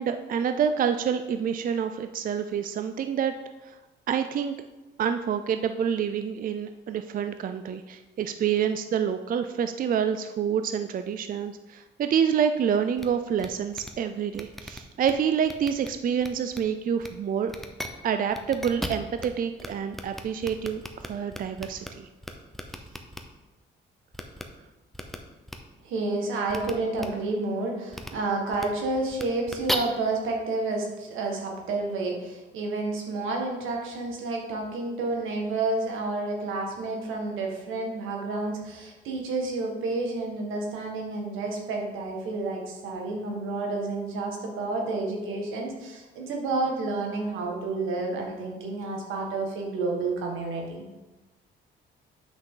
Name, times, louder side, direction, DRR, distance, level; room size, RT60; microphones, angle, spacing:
voice 1, 0.0-3.3 3.6-3.8 4.1-4.5 5.0-17.5 18.0-22.1, right 8 dB, 45° right, 9 dB, 0.4 m, -27 dB
sound 1, 13.0-13.1 13.4-13.5 13.7-13.9 14.3-15.1 15.4-15.9 16.2-16.6 17.0-17.1 17.5-17.9 18.3-19.3 19.6-19.7 19.9-21.9 22.2-23.2 24.1-24.4 24.9-25.2 25.5-25.6 26.5-26.7 27.0-27.1 27.9-28.1 28.5-28.6 29.1-29.7, equal, ahead, 0.8 m, -35 dB
voice 2, 25.8-50.8, right 3 dB, 85° right, 1 dB, 1.8 m, -30 dB
7.9 x 5.9 x 3.9 m, 1.1 s
cardioid pair, 90°, 20 cm